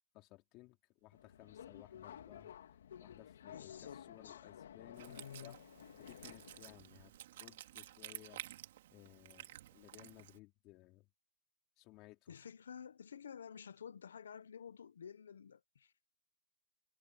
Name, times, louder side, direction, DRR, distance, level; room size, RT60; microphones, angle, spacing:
voice 1, 0.1-2.5 3.0-5.6 6.0-8.4 8.9-11.1 11.8-12.5, left 20 dB, 25° left, 4.5 m, -59 dB
sound 1, 1.0-7.3, right 9 dB, 65° right, 7.5 m, -74 dB
Subway metro underground, 1.1-6.8, left 9 dB, 70° left, 3.3 m, -54 dB
voice 2, 3.5-4.5 5.1-5.6 12.3-15.9, left 7 dB, 90° left, 1.1 m, -51 dB
Wind instrument woodwind instrument, 4.9-10.4, right 13 dB, 50° right, 2.7 m, -52 dB
hypercardioid pair, 165°, 0 cm